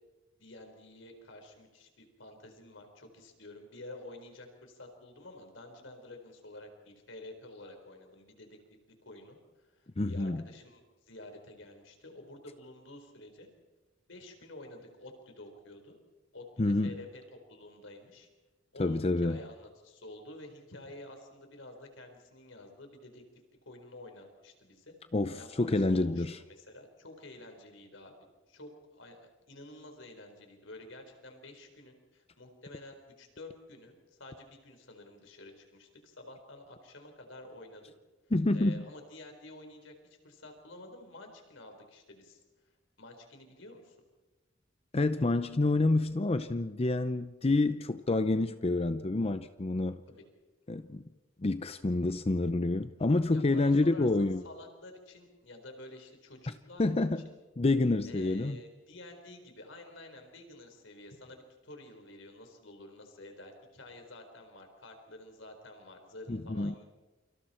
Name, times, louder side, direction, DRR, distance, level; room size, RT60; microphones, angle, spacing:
voice 1, 0.4-8.6 9.0-13.5 14.1-16.0 16.3-17.2 17.5-18.3 18.7-23.2 23.7-24.9 25.4-28.1 28.5-37.8 38.5-42.4 43.0-44.0 50.1-50.2 53.3-56.9 57.2-57.4 58.1-66.8, left 2 dB, 75° left, 4.5 m, -50 dB
voice 2, 10.0-10.4 16.6-16.9 18.8-19.4 25.1-26.4 38.3-38.9 44.9-50.0 50.7-51.0 51.4-54.4 56.8-57.2 57.6-58.6 66.3-66.7, left 2 dB, 30° left, 0.6 m, -28 dB
29.0 x 25.5 x 4.4 m
head